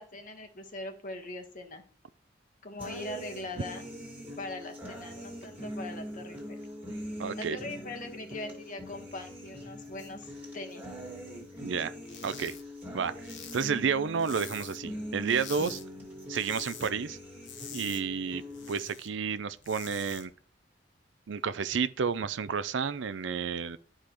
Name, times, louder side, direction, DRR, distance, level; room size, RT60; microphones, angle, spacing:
voice 1, 0.0-1.8 2.6-3.8 4.4-6.6 7.4-10.8, left 2 dB, 45° left, 1.3 m, -41 dB
sound 1, 2.8-18.8, equal, 10° right, 2.0 m, -42 dB
voice 2, 7.2-7.6 11.6-11.9 12.2-12.6 12.9-13.1 13.5-15.8 16.3-17.2 17.7-20.3 21.3-23.8, right 6 dB, 75° right, 0.5 m, -31 dB
sound 2, 12.0-12.6 12.9-14.9 15.2-15.8 16.2-16.9 17.2-19.1 19.5-20.2, left 7 dB, 85° left, 1.2 m, -46 dB
11.5 x 5.0 x 3.0 m
head